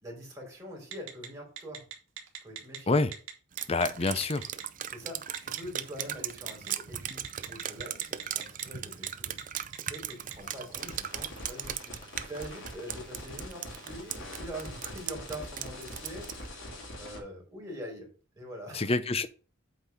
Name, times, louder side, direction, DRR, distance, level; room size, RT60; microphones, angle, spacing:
voice 1, 0.0-1.8 2.4-3.0 4.9-18.1 18.3-18.9, equal, 15° right, 3.3 m, -44 dB
Telephone, 0.9-1.3 1.6-2.8 3.1-3.3 3.6-4.6 5.3-6.0 6.5-6.7 7.1-8.6 8.9-9.1 9.4-10.3, right 10 dB, 80° right, 1.8 m, -39 dB
Drip, 3.6-16.5, right 10 dB, 40° right, 0.5 m, -38 dB
voice 2, 3.7-4.5 18.7-19.3, left 3 dB, 30° left, 0.6 m, -27 dB
sound 1, 10.4-17.2, left 1 dB, 70° left, 2.4 m, -44 dB
8.2 x 4.0 x 5.6 m
head